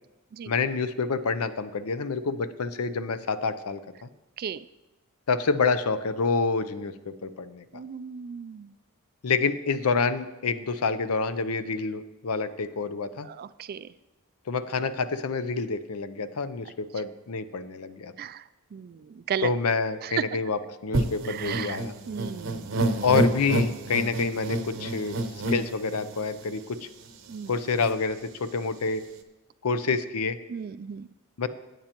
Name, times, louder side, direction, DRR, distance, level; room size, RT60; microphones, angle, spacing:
voice 1, 0.5-4.1 5.3-7.8 9.2-13.3 14.5-18.1 19.4-22.0 23.0-25.2 25.5-26.9 27.5-29.0 29.6-30.4 31.4-31.5, left 4 dB, 75° left, 12 dB, 0.6 m, -28 dB
voice 2, 7.7-8.7 13.2-13.9 18.2-18.4 18.7-19.5 20.0-20.2 21.2-21.8 22.1-22.8 27.3-27.5 30.5-31.1, right 8 dB, 45° right, 15 dB, 0.3 m, -34 dB
sound 1, 20.9-26.5 27.0-27.1 27.3-27.9, right 1 dB, 60° right, 0.8 m, -29 dB
15.5 x 8.9 x 3.0 m, 1.0 s
head